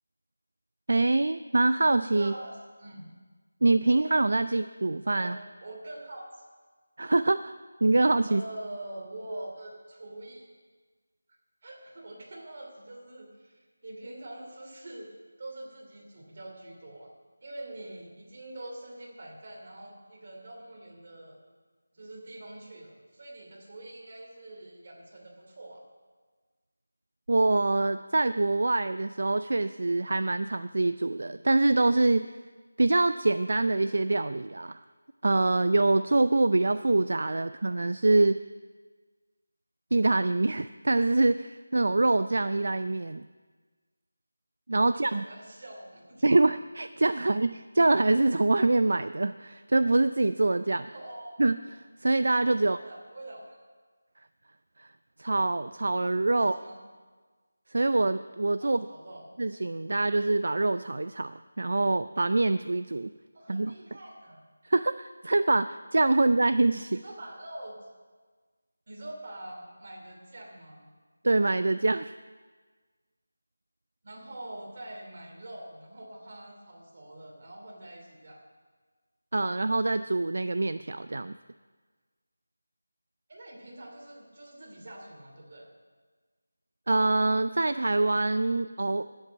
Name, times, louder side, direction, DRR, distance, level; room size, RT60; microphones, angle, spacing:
voice 1, 0.9-2.3 3.6-5.4 7.0-7.5 7.8-8.4 27.3-32.4 32.8-34.8 35.2-38.4 39.9-43.3 44.7-45.2 46.2-50.9 51.4-51.6 52.0-52.8 54.8-54.9 55.2-56.6 57.7-58.9 59.4-63.1 63.5-63.7 64.6-67.0 71.2-72.1 79.3-81.3 86.9-89.0, right 2 dB, 50° right, 12 dB, 0.4 m, -25 dB
voice 2, 2.1-3.1 4.4-4.5 5.2-6.5 8.3-10.5 11.6-15.1 15.4-17.1 17.4-21.4 21.9-25.8 44.8-46.2 50.8-51.4 52.6-53.6 56.3-56.8 58.6-59.4 63.3-64.4 66.9-67.8 68.9-70.9 74.0-78.4 83.3-85.7, right 1 dB, 30° right, -1 dB, 2.8 m, -44 dB
12.5 x 8.0 x 9.1 m, 1.4 s
figure-of-eight pair, 180°, 0 cm